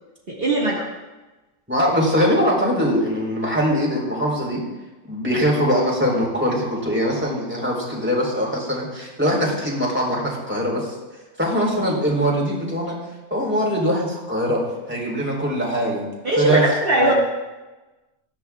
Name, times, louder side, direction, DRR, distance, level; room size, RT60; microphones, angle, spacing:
voice 1, 0.3-0.9 16.2-17.1, right 1 dB, 45° right, -5 dB, 2.2 m, -20 dB
voice 2, 1.7-4.6 5.1-10.9 11.4-13.0 13.3-14.6 14.9-16.1 16.4-16.6 17.0-17.1, equal, 10° right, -3 dB, 4.2 m, -22 dB
19.5 x 15.0 x 2.5 m, 1.1 s
omnidirectional pair, 1.4 m